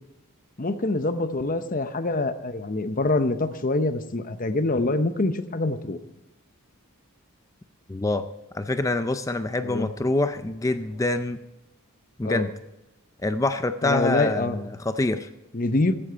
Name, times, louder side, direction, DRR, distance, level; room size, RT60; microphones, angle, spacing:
voice 1, 0.6-6.0 9.6-9.9 12.2-12.5 13.8-14.6 15.5-15.9, left 2 dB, 40° left, 11 dB, 0.8 m, -25 dB
voice 2, 7.9-8.3 8.5-11.4 12.2-12.5 13.2-15.3, left 2 dB, 15° left, 10 dB, 0.4 m, -26 dB
15.5 x 8.8 x 4.6 m, 0.97 s
head